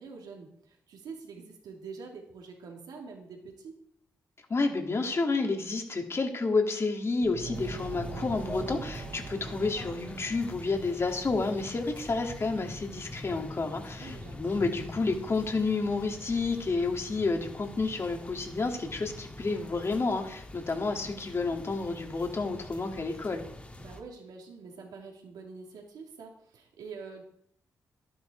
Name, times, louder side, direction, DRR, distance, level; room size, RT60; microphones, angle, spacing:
voice 1, 0.0-3.7 13.6-14.4 23.8-27.2, right 4 dB, 85° right, 0 dB, 3.1 m, -46 dB
voice 2, 4.5-23.4, left 3 dB, 40° left, 3 dB, 2.5 m, -30 dB
sound 1, 7.2-10.9, right 6 dB, 60° right, 0.8 m, -43 dB
sound 2, 7.5-24.0, left 1 dB, 20° left, 2.0 m, -44 dB
12.0 x 10.5 x 4.7 m, 0.67 s
cardioid pair, 70°, 7 cm